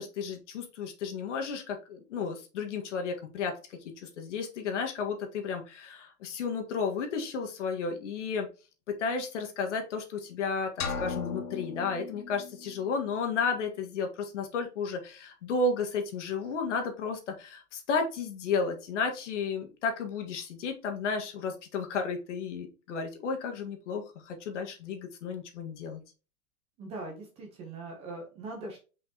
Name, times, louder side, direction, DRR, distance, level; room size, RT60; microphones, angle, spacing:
voice 1, 0.0-8.5 8.9-26.0, left 5 dB, 55° left, 4 dB, 1.8 m, -33 dB
sound 1, 10.8-12.7, left 5 dB, 75° left, 2.3 m, -36 dB
voice 2, 26.8-28.8, right 2 dB, 15° right, 1 dB, 0.9 m, -41 dB
6.0 x 5.5 x 2.9 m, 0.32 s
supercardioid pair, 175°, 43 cm